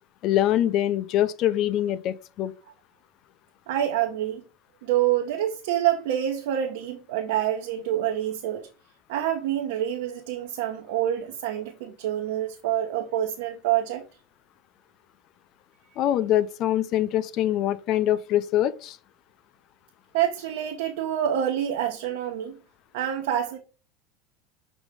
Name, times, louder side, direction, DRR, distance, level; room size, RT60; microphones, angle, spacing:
voice 1, 0.2-2.5 16.0-19.0, left 12 dB, 55° left, 0.5 m, -24 dB
voice 2, 3.7-4.4 4.8-8.7 9.1-14.0 20.1-22.6 22.9-23.6, right 11 dB, 75° right, 1.0 m, -27 dB
6.8 x 4.0 x 3.6 m
hypercardioid pair, 95°, 0 cm